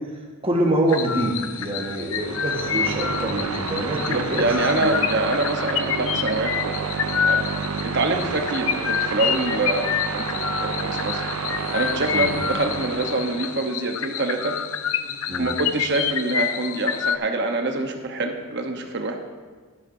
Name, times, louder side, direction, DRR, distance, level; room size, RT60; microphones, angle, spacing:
voice 1, 0.4-4.4 4.8-5.0 8.1-8.3 12.1-12.3 15.3-15.5, right 1 dB, 25° right, -1 dB, 1.4 m, -25 dB
sound 1, 0.9-17.2, left 8 dB, 70° left, 0.5 m, -28 dB
sound 2, 2.1-13.7, right 5 dB, 80° right, 0.5 m, -30 dB
voice 2, 4.1-6.8 7.2-7.4 7.8-11.2 11.7-14.5 15.4-19.2, right 2 dB, 55° right, 4 dB, 1.0 m, -25 dB
12.0 x 12.0 x 2.7 m, 1.4 s
head